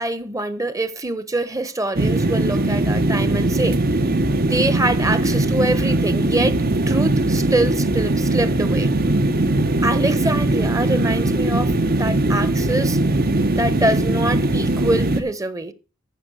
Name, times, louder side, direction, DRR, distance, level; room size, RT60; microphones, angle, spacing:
voice 1, 0.0-3.8 4.3-6.6 6.9-8.9 9.8-13.0 13.6-15.7, right 2 dB, 15° right, 1.1 m, -24 dB
sound 1, 1.9-15.2, right 2 dB, 45° right, 1.2 m, -20 dB
13.5 x 6.5 x 6.4 m
head